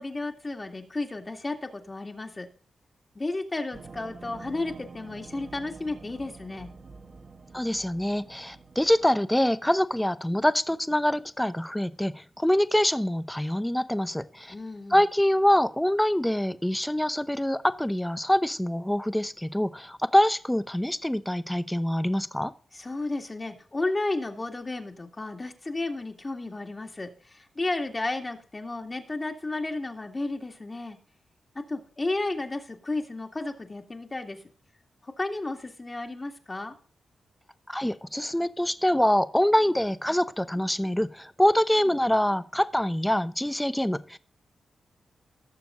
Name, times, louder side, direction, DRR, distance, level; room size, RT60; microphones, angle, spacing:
voice 1, 0.0-2.5 3.2-6.7 14.5-15.0 22.7-31.0 31.6-34.4 35.0-36.7, left 2 dB, 30° left, 3 dB, 2.1 m, -33 dB
sound 1, 3.7-9.1, right 4 dB, 45° right, 1.5 m, -47 dB
voice 2, 7.5-14.5 14.9-22.5 37.7-44.2, left 1 dB, 5° left, 14 dB, 0.8 m, -25 dB
18.0 x 6.9 x 3.8 m, 0.43 s
cardioid pair, 75°, 0 cm